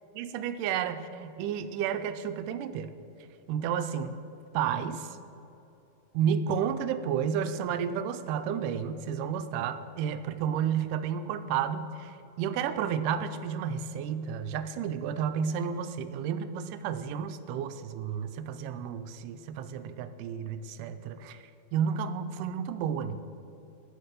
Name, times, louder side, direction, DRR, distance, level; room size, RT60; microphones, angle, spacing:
voice 1, 0.1-2.9 3.5-4.2 4.5-5.2 6.1-21.4 21.7-23.2, right 8 dB, 85° right, 10 dB, 2.2 m, -31 dB
11.0 x 6.5 x 6.7 m, 2.9 s
omnidirectional pair, 3.7 m